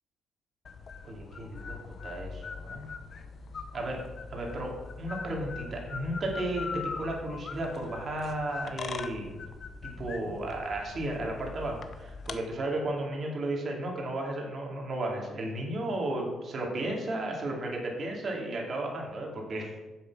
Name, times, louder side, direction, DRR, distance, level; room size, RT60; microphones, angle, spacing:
sound 1, 0.6-12.4, left 5 dB, 50° left, 0.8 m, -41 dB
voice 1, 1.0-2.9 3.7-4.0 4.3-9.4 9.8-19.8, right 1 dB, 50° right, 0 dB, 2.6 m, -34 dB
7.6 x 7.3 x 6.1 m, 1.1 s
cardioid pair, 90°, 0 cm